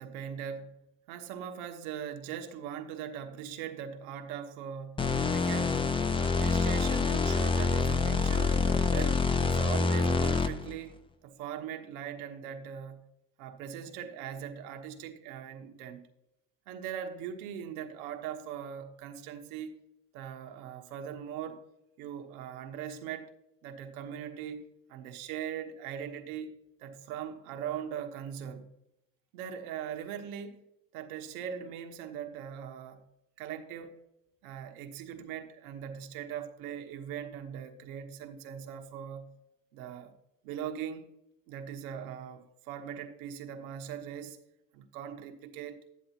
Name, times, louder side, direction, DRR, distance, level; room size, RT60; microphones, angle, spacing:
voice 1, 0.0-5.9 6.2-9.2 9.5-11.0 11.2-13.1 13.4-16.0 16.7-19.8 20.1-21.6 22.0-23.3 23.6-28.7 29.3-30.6 30.9-33.0 33.4-34.0 34.4-39.4 39.7-40.1 40.4-41.1 41.5-44.4 44.7-45.8, right 8 dB, 80° right, 1.2 m, -40 dB
sound 1, 5.0-10.7, left 4 dB, 15° left, 0.5 m, -27 dB
11.5 x 9.7 x 2.9 m
supercardioid pair, 100°, 43 cm